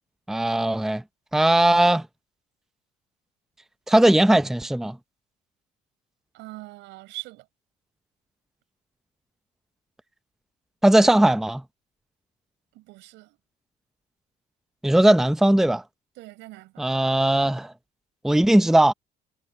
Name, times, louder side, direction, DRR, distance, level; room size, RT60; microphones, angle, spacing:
voice 1, 0.3-1.0 1.3-2.0 3.9-5.0 10.8-11.6 14.8-15.8 16.8-17.7 18.2-18.9, right 1 dB, ahead, 0.7 m, -18 dB
voice 2, 6.3-7.5 12.7-13.4 16.2-16.9, right 20 dB, 80° right, 7.8 m, -42 dB
supercardioid pair, 75°, 18 cm